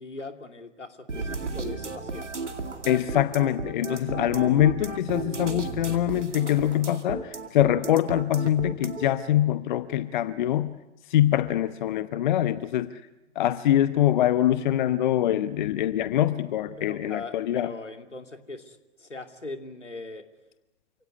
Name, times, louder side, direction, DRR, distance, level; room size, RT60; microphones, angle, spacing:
voice 1, 0.0-2.3 16.8-20.2, left 3 dB, 85° left, 6 dB, 2.8 m, -40 dB
sound 1, 1.1-9.1, right 3 dB, 80° right, 2.5 m, -34 dB
voice 2, 2.9-10.7 11.1-12.9 13.4-17.7, left 12 dB, 40° left, 13 dB, 0.9 m, -24 dB
28.5 x 17.5 x 9.7 m, 1.0 s
figure-of-eight pair, 115°, 35 cm